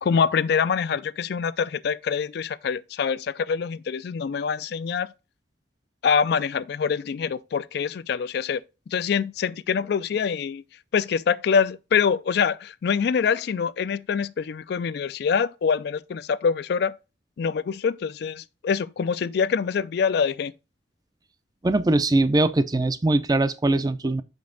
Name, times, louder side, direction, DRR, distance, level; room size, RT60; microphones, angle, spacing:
voice 1, 0.0-5.1 6.0-10.6 10.9-16.9 17.4-20.5, left 6 dB, 60° left, 0.3 m, -25 dB
voice 2, 21.6-24.2, right 2 dB, 20° right, 0.4 m, -21 dB
5.7 x 5.3 x 3.7 m
head